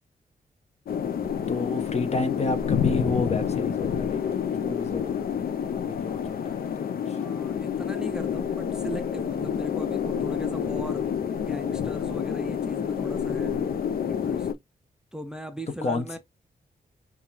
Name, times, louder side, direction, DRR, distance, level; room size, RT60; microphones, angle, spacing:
sound 1, 0.9-14.5, left 8 dB, 70° left, 0.5 m, -28 dB
voice 1, 1.5-5.3 5.8-7.2 15.8-16.2, left 3 dB, 40° left, 0.8 m, -31 dB
voice 2, 7.1-13.6 14.1-14.5 15.1-16.2, equal, 5° right, 0.4 m, -39 dB
5.6 x 2.3 x 2.9 m
wide cardioid pair, 160°, 16 cm